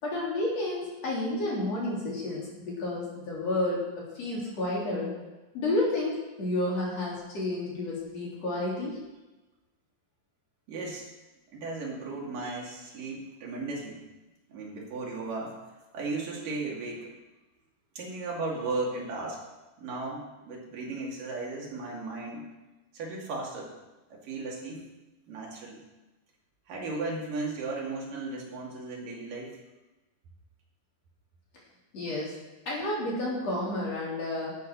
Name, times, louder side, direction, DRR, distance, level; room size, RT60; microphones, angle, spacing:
voice 1, 0.0-5.1 5.5-9.0 31.9-32.3 32.7-34.6, left 2 dB, 40° left, -5 dB, 4.2 m, -31 dB
voice 2, 10.7-11.1 11.5-14.0 14.5-15.6 15.9-17.1 18.0-19.4 19.8-22.4 22.9-23.7 24.1-24.9 25.3-25.8 26.7-29.6, right 3 dB, 55° right, -3 dB, 3.7 m, -35 dB
12.5 x 7.9 x 6.2 m, 1.1 s
omnidirectional pair, 5.1 m